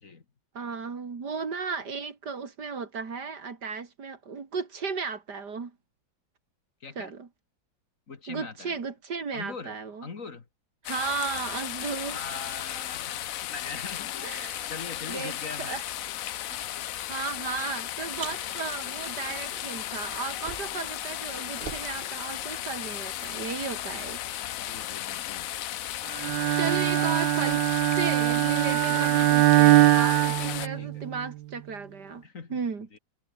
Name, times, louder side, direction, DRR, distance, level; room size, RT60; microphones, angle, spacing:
voice 1, 0.5-5.7 7.0-7.3 8.3-10.1 10.8-12.2 14.2-14.7 15.1-15.8 17.1-24.2 26.5-27.6 27.9-32.2 32.5-32.9, right 5 dB, 65° right, 3.0 m, -35 dB
voice 2, 6.8-7.1 8.1-8.8 9.3-9.7 10.0-10.5 12.1-15.8 16.8-16.9 24.6-25.5 26.5-27.2 30.5-31.0 32.2-32.6 32.9-33.0, left 4 dB, 45° left, 2.2 m, -41 dB
sound 1, 10.8-30.7, left 12 dB, 65° left, 0.9 m, -35 dB
Car, 18.1-20.9 21.2-23.0, right 6 dB, 35° right, 1.2 m, -45 dB
Bowed string instrument, 26.2-31.2, right 16 dB, 85° right, 1.3 m, -22 dB
omnidirectional pair, 2.0 m